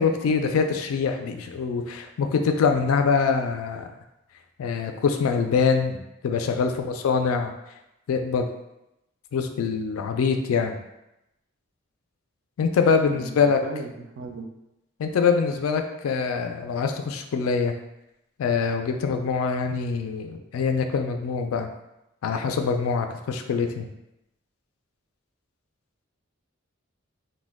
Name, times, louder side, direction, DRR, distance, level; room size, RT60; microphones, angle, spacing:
voice 1, 0.0-3.9 4.6-6.0 6.2-7.5 8.1-8.5 9.3-10.8 12.6-13.6 15.0-17.7 18.4-21.7 22.2-23.9, left 5 dB, 85° left, 6 dB, 0.3 m, -24 dB
voice 2, 13.1-14.5, right 2 dB, 65° right, 3 dB, 0.4 m, -37 dB
2.1 x 2.1 x 3.4 m, 0.89 s
head